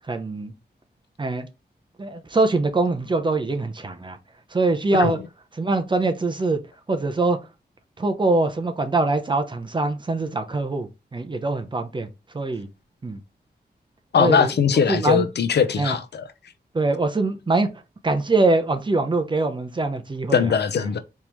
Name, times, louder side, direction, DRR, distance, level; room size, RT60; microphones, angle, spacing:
voice 1, 0.1-0.5 1.2-1.5 2.0-4.2 4.5-5.2 5.6-6.6 6.9-7.4 8.0-12.1 12.3-12.7 13.0-13.2 14.2-15.3 15.8-16.0 16.7-17.7 18.0-20.5, right 3 dB, 25° right, 0.7 m, -23 dB
voice 2, 14.1-16.2 20.3-21.0, left 6 dB, 75° left, 0.6 m, -20 dB
4.5 x 3.5 x 3.0 m
wide cardioid pair, 135°, 17 cm